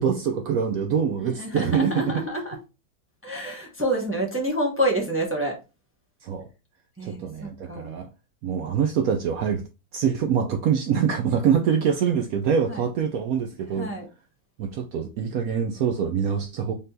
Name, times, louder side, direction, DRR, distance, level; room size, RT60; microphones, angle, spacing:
voice 1, 0.0-2.2 6.2-6.5 7.0-8.1 8.4-9.6 9.9-13.9 14.6-16.7, right 7 dB, 75° right, 0.8 m, -24 dB
voice 2, 1.2-2.6 3.2-5.5 7.0-7.9 12.7-12.8 13.8-14.0, right 1 dB, 20° right, 0.3 m, -28 dB
4.1 x 3.5 x 2.6 m
omnidirectional pair, 2.0 m